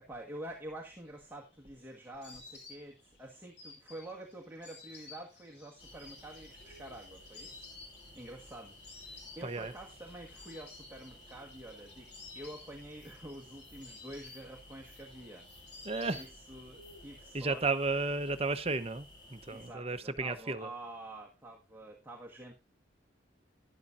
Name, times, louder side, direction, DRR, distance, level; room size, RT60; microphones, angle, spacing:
voice 1, 0.0-7.7 8.1-17.7 19.5-22.6, right 1 dB, 10° right, 1.4 m, -48 dB
Insect, 1.1-16.8 17.0-17.8, left 3 dB, 60° left, 3.1 m, -54 dB
sound 1, 5.8-19.7, left 1 dB, 25° left, 3.7 m, -55 dB
voice 2, 9.4-9.7 15.8-16.2 17.3-20.7, right 3 dB, 30° right, 0.8 m, -33 dB
11.5 x 11.0 x 2.5 m
head